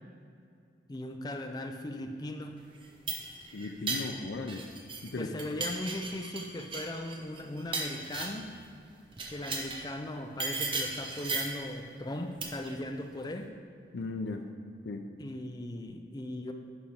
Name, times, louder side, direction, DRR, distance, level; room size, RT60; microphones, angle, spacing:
voice 1, 0.9-2.7 5.2-8.6 9.3-13.5 15.2-16.5, left 1 dB, 20° left, 4 dB, 0.4 m, -38 dB
sound 1, 2.7-5.1 5.4-8.5 9.1-9.9 10.4-11.6 12.4-12.7, right 3 dB, 30° right, 0.8 m, -36 dB
voice 2, 3.5-4.6 5.0-5.3 13.9-14.5 14.8-15.1, left 3 dB, 75° left, 4 dB, 0.5 m, -36 dB
11.0 x 4.9 x 4.4 m, 2.3 s
head